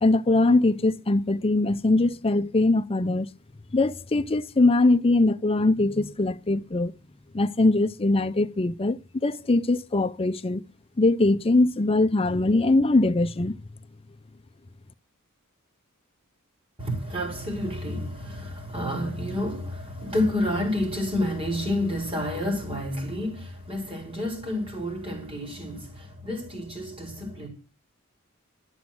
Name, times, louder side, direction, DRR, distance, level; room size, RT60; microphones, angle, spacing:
voice 1, 0.0-3.3 3.7-6.9 7.3-10.6 11.0-13.5, left 2 dB, 25° left, 0.6 m, -22 dB
voice 2, 16.8-27.5, left 1 dB, 25° right, 4.7 m, -29 dB
12.5 x 7.2 x 7.7 m
head